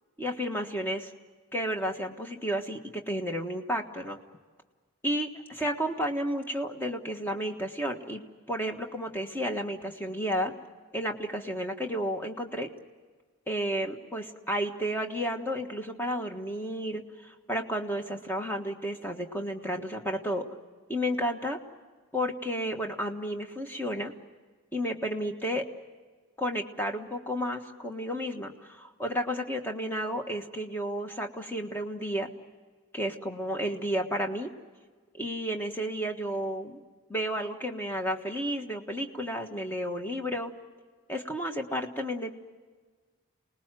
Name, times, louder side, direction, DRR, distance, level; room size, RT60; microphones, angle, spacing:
voice 1, 0.2-1.1 1.5-2.8 3.1-4.2 5.0-10.5 10.9-12.7 13.5-20.5 20.9-21.6 22.1-24.1 24.7-25.7 26.4-32.3 32.9-34.5 35.1-36.8 37.1-40.5 41.1-42.3, equal, 10° left, 3 dB, 1.5 m, -32 dB
28.0 x 20.0 x 7.6 m, 1.4 s
head